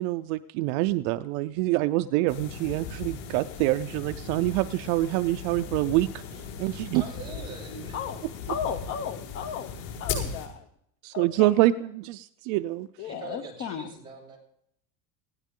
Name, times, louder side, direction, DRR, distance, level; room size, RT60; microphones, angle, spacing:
voice 1, 0.0-6.1 6.4-7.0 11.0-12.9, right 17 dB, 60° right, 11 dB, 0.6 m, -26 dB
sound 1, 2.3-10.5, left 5 dB, 85° left, 7.4 m, -37 dB
voice 2, 6.9-8.0 13.1-14.4, right 3 dB, 10° right, -3 dB, 6.0 m, -42 dB
voice 3, 8.5-9.7 10.0-10.6 11.1-11.5 13.0-13.9, left 8 dB, 30° left, 9 dB, 0.7 m, -34 dB
20.0 x 16.5 x 3.7 m, 0.74 s
cardioid pair, 175°, 44 cm